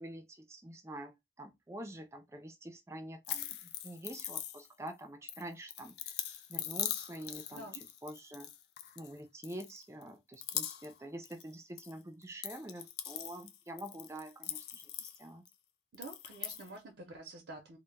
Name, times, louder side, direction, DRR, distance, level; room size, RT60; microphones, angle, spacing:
voice 1, 0.0-6.2 6.5-7.7 8.0-8.5 9.0-15.4, right 1 dB, 15° right, 0.3 m, -46 dB
sound 1, 3.2-4.9 5.3-9.1 9.4-10.0 10.3-11.9 12.2-15.5 15.9-16.7, left 11 dB, 65° left, 0.3 m, -41 dB
voice 2, 7.5-7.8 15.9-17.8, right 2 dB, 85° right, 0.5 m, -48 dB
2.1 x 2.0 x 3.2 m
head